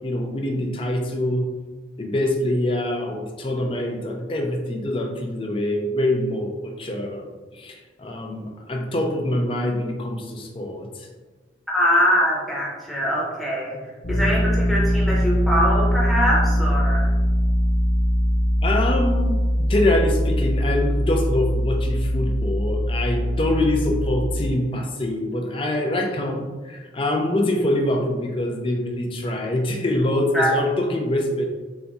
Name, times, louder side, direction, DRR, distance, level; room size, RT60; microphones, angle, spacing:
voice 1, 0.0-1.5 2.0-11.1 18.6-31.4, left 1 dB, 30° left, 2 dB, 0.4 m, -24 dB
voice 2, 11.7-13.8 14.1-17.1 30.3-30.5, equal, ahead, -6 dB, 0.8 m, -22 dB
sound 1, 14.0-24.5, equal, 55° left, 0.7 m, -21 dB
4.1 x 2.6 x 2.3 m, 1.3 s
head